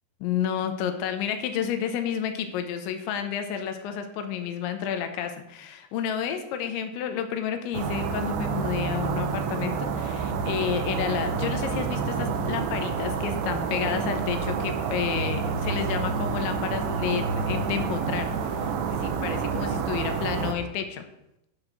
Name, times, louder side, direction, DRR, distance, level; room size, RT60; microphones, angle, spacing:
voice 1, 0.2-21.1, left 8 dB, 85° left, 7 dB, 3.0 m, -30 dB
sound 1, 7.7-20.5, right 5 dB, 75° right, 2.9 m, -28 dB
11.0 x 3.9 x 5.9 m, 0.83 s
omnidirectional pair, 5.4 m